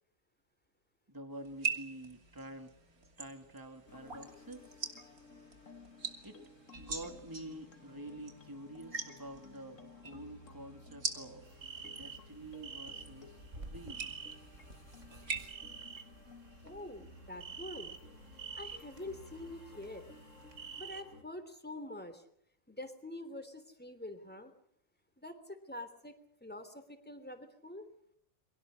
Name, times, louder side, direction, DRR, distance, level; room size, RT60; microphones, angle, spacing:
voice 1, 1.1-2.7 3.2-4.8 6.2-6.4 6.8-11.5 11.8-14.2, right 1 dB, 15° right, 6 dB, 2.7 m, -48 dB
sound 1, 1.5-15.4, right 4 dB, 85° right, 3.4 m, -44 dB
sound 2, 3.9-21.2, left 3 dB, 60° left, 2.5 m, -56 dB
sound 3, 11.4-21.0, right 6 dB, 55° right, 3.7 m, -49 dB
voice 2, 16.6-17.9 18.5-20.0 20.8-22.2 22.7-24.5 25.2-26.1 26.4-27.8, left 1 dB, 5° left, 8 dB, 3.3 m, -46 dB
29.5 x 23.5 x 6.5 m, 0.67 s
omnidirectional pair, 1.5 m